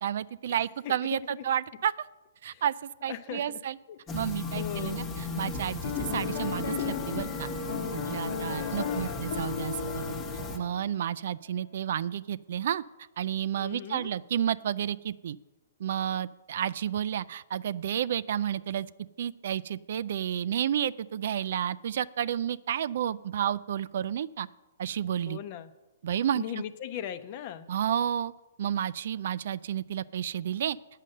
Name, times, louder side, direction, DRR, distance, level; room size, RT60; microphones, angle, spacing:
voice 1, 0.0-1.9 2.4-3.8 4.1-7.5 7.9-10.1 10.5-12.8 13.2-15.4 15.8-18.9 19.2-24.5 24.8-25.4 26.0-26.4 27.7-28.3 28.6-30.8, right 10 dB, 60° right, 17 dB, 0.3 m, -31 dB
voice 2, 0.8-1.4 2.4-2.6 3.1-3.6 3.9-4.0 4.5-5.0 8.2-9.3 13.6-14.1 25.3-25.7 26.3-27.7, left 10 dB, 40° left, 12 dB, 0.7 m, -39 dB
sound 1, 4.1-10.6, left 2 dB, 20° left, 1.0 m, -36 dB
Piano, 5.8-11.1, left 7 dB, 70° left, 1.1 m, -36 dB
9.1 x 6.5 x 7.7 m, 1.1 s
hypercardioid pair, 145°, 0 cm